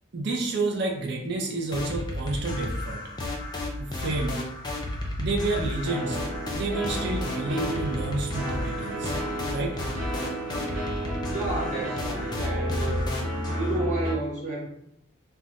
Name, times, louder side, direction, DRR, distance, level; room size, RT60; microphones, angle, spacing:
voice 1, 0.1-3.0 3.8-4.4 5.2-6.2 6.5-9.1 9.5-9.8, right 2 dB, 50° right, 0 dB, 0.5 m, -29 dB
sound 1, 1.7-13.8, left 1 dB, 20° left, 0.4 m, -33 dB
sound 2, 2.8-3.2 5.8-14.1, right 1 dB, 90° right, 0.7 m, -33 dB
voice 2, 11.2-13.1 13.5-14.7, right 2 dB, 35° right, -5 dB, 0.9 m, -31 dB
2.3 x 2.2 x 3.9 m, 0.76 s
head